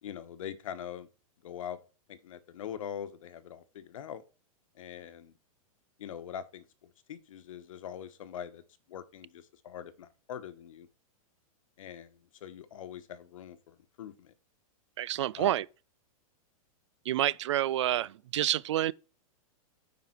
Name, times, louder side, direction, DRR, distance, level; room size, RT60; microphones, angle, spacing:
voice 1, 0.0-1.1 1.4-1.8 2.1-4.2 4.7-5.3 6.0-8.6 8.9-10.9 11.8-14.3 15.3-15.6, left 9 dB, 65° left, 1.2 m, -43 dB
voice 2, 15.0-15.7 17.1-18.9, right 13 dB, 55° right, 0.4 m, -28 dB
9.7 x 5.1 x 4.5 m
supercardioid pair, 175°, 18 cm